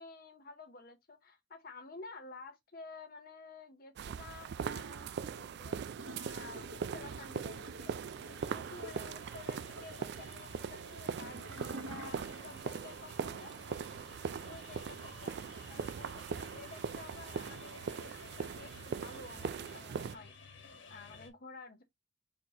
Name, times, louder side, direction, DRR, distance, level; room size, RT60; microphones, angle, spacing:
voice 1, 0.0-5.9 6.2-13.8 14.2-20.3 20.9-21.8, left 3 dB, 50° left, 0.9 m, -52 dB
sound 1, 4.0-20.2, right 6 dB, 60° right, 0.3 m, -41 dB
Gurgling / Toilet flush, 6.0-12.8 13.1-13.2, right 2 dB, 80° right, 1.3 m, -49 dB
sound 2, 8.2-21.3, left 4 dB, 65° left, 1.5 m, -55 dB
4.5 x 3.9 x 2.8 m
head